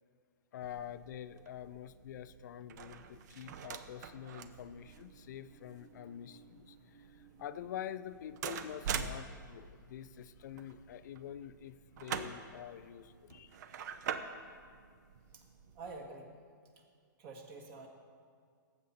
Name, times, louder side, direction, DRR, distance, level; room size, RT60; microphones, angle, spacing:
voice 1, 0.5-13.6, left 10 dB, 60° left, 14 dB, 0.5 m, -46 dB
sound 1, 0.6-16.1, right 7 dB, 55° right, 0.8 m, -45 dB
voice 2, 15.7-16.4 17.2-17.9, right 3 dB, 40° right, 2 dB, 1.6 m, -47 dB
18.5 x 7.8 x 4.3 m, 2.1 s
hypercardioid pair, 125°, 11 cm